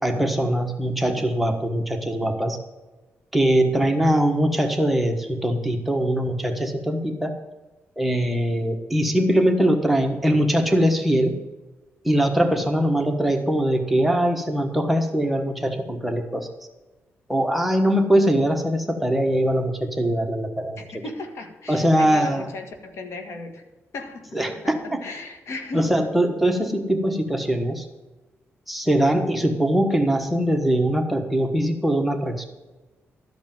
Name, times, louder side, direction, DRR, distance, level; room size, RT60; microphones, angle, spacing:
voice 1, 0.0-2.6 3.3-7.3 8.0-11.3 12.0-16.5 17.3-21.0 21.7-22.5 24.3-25.0 25.7-27.9 28.7-32.4, right 1 dB, ahead, 3 dB, 1.4 m, -22 dB
voice 2, 20.8-23.6 23.9-25.9, left 3 dB, 70° left, 6 dB, 1.7 m, -36 dB
13.0 x 5.3 x 9.0 m, 1.2 s
cardioid pair, 100°, 5 cm